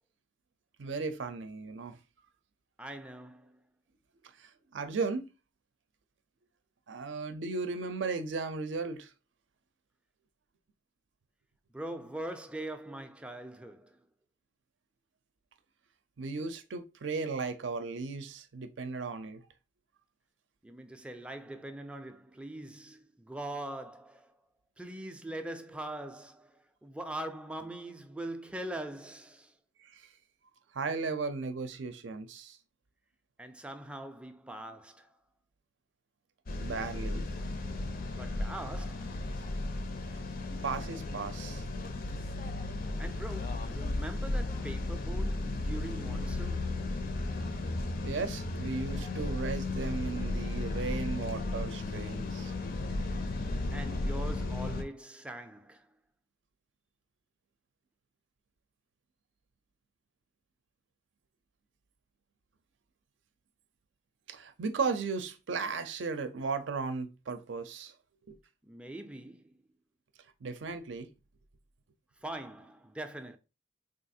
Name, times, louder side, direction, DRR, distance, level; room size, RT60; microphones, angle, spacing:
voice 1, 0.8-2.0 4.4-5.3 6.9-9.1 16.2-19.4 29.8-30.1 30.7-32.6 36.6-37.2 40.6-41.6 48.0-52.5 64.3-67.9 68.3-68.4 70.4-71.1, right 4 dB, 80° right, 0.5 m, -36 dB
voice 2, 2.8-3.6 11.7-14.1 20.6-24.3 24.8-29.5 33.4-35.2 38.1-39.2 43.0-46.9 53.7-55.9 68.7-69.6 72.2-73.4, right 1 dB, 5° right, 0.3 m, -42 dB
sound 1, 36.5-54.8, left 2 dB, 50° left, 0.5 m, -34 dB
3.7 x 2.4 x 2.6 m
head